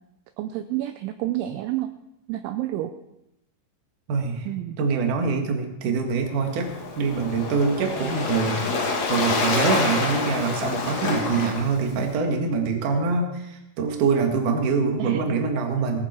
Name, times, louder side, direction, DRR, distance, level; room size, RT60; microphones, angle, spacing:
voice 1, 0.4-1.9 2.3-2.9 4.5-4.8 15.0-15.4, right 14 dB, 80° right, 8 dB, 2.9 m, -29 dB
voice 2, 4.1-4.5 4.8-6.7 7.0-8.6 9.1-16.1, right 4 dB, 55° right, 3 dB, 2.6 m, -24 dB
Waves surf, 6.4-12.1, left 3 dB, 55° left, 2.0 m, -27 dB
18.0 x 14.0 x 4.4 m, 0.86 s
omnidirectional pair, 5.8 m